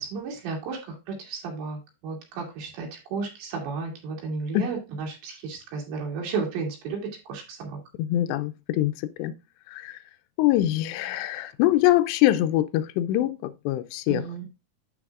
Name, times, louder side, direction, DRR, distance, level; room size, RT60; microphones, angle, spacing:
voice 1, 0.0-7.8 14.1-14.5, right 4 dB, 85° right, 4.7 m, -33 dB
voice 2, 8.1-9.3 9.7-10.0 10.4-14.2, left 14 dB, 85° left, 2.8 m, -24 dB
12.0 x 5.4 x 2.4 m
omnidirectional pair, 4.9 m